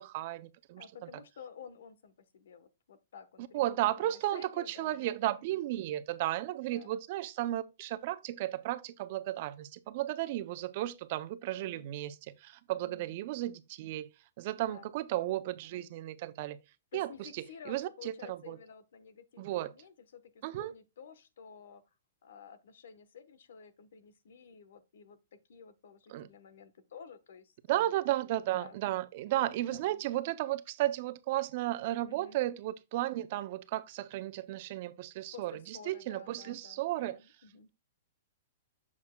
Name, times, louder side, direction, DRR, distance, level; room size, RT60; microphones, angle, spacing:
voice 1, 0.0-0.8 3.5-14.1 14.4-16.6 16.9-17.3 17.7-18.6 19.4-19.7 20.4-20.7 26.1-26.3 27.7-37.2, right 15 dB, 45° right, 0.6 m, -34 dB
voice 2, 0.8-5.2 5.5-5.7 6.6-7.0 11.5-11.9 12.8-13.1 14.6-14.9 15.2-15.5 16.9-21.8 22.2-27.9 28.5-28.8 29.3-30.0 32.1-32.4 35.3-37.7, left 6 dB, 75° left, 1.1 m, -52 dB
7.2 x 6.4 x 2.2 m
hypercardioid pair, 155°, 0 cm